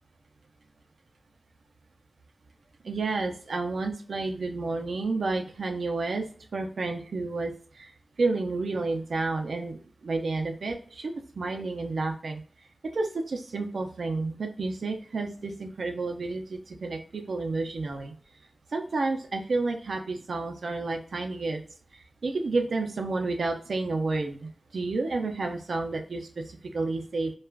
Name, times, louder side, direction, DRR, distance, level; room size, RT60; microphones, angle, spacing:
voice 1, 2.8-12.4 12.9-18.1 18.7-21.6 22.2-27.3, right 3 dB, 85° right, 3 dB, 0.5 m, -30 dB
2.3 x 2.2 x 3.4 m, 0.42 s
wide cardioid pair, 90°, 0 cm